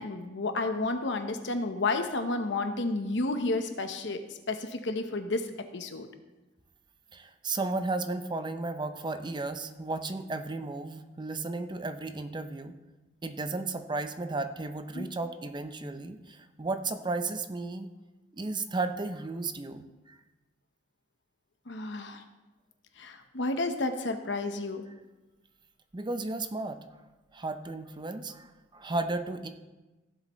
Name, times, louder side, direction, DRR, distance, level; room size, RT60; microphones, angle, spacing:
voice 1, 0.0-4.2 4.5-5.5 5.7-6.1 14.9-15.1 21.7-22.2 23.0-24.8, left 2 dB, 70° left, 7 dB, 1.0 m, -31 dB
voice 2, 7.1-12.7 13.2-17.9 18.3-20.2 25.9-26.8 27.3-29.5, right 3 dB, 25° right, 8 dB, 0.6 m, -34 dB
16.0 x 7.4 x 3.1 m, 1.1 s
head